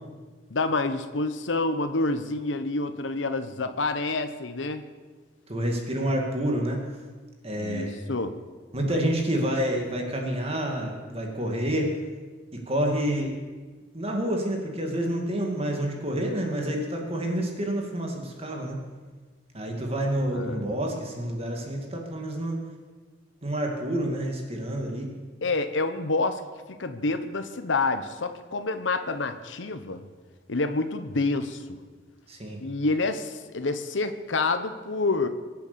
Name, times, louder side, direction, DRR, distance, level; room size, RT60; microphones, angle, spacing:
voice 1, 0.5-4.8 7.6-8.3 20.3-20.7 25.4-26.4 26.8-30.0 30.5-31.8 32.6-35.3, left 3 dB, 85° left, 9 dB, 1.0 m, -28 dB
voice 2, 5.5-6.8 7.4-8.0 8.7-11.9 12.5-13.3 13.9-18.8 19.5-22.6 23.4-25.1 32.3-32.6, right 1 dB, 35° right, 1 dB, 2.2 m, -28 dB
23.5 x 8.3 x 6.9 m, 1.4 s
head